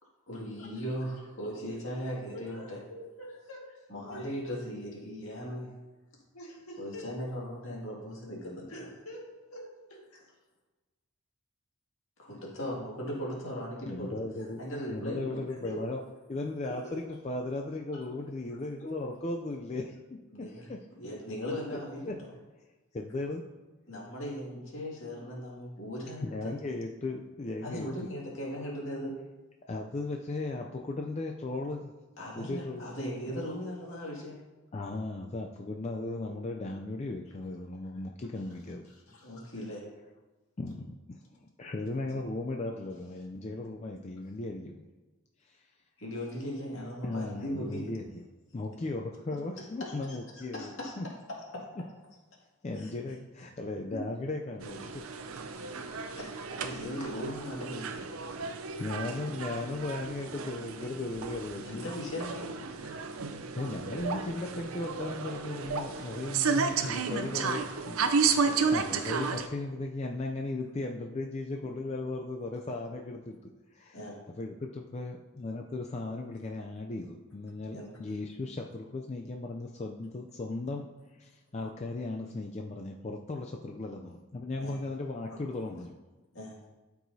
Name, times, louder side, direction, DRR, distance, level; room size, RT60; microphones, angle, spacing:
voice 1, 0.3-2.8 3.9-5.7 6.8-8.9 12.2-14.2 14.6-15.4 20.3-20.7 21.0-22.3 23.9-26.5 27.6-29.1 32.2-34.4 39.2-39.8 42.1-42.2 46.0-47.8 49.8-50.9 51.5-51.6 52.8-52.9 53.9-54.0 56.2-56.3 56.6-58.1 61.6-62.5 67.1-67.5 68.4-68.6 73.9-74.2 77.7-77.9 84.6-84.8 86.3-86.6, equal, 65° left, -4 dB, 2.1 m, -38 dB
voice 2, 2.3-3.8 4.1-4.4 6.3-7.1 8.7-9.7 10.1-10.2 14.4-14.5 15.6-15.8 16.6-17.0 17.9-18.1 18.5-18.9 38.9-39.5 55.7-56.2 57.0-57.1 62.8-62.9 65.9-66.1 84.7-84.8 85.3-85.4, equal, 90° left, -2 dB, 1.8 m, -46 dB
voice 3, 13.9-14.6 14.9-16.0 16.3-19.9 20.4-20.8 21.7-21.8 22.0-22.1 22.9-23.4 26.2-28.1 29.7-31.9 32.4-32.9 33.3-33.4 34.7-38.8 40.6-44.8 45.5-45.6 47.0-48.0 48.5-51.1 52.6-54.9 55.4-55.8 58.5-61.8 62.9-63.1 63.5-74.0 74.4-80.9 81.2-86.0, left 2 dB, 30° left, 1 dB, 0.4 m, -37 dB
sound 1, 54.6-69.5, right 5 dB, 80° right, 0.6 m, -33 dB
12.5 x 4.7 x 2.7 m, 1.2 s
head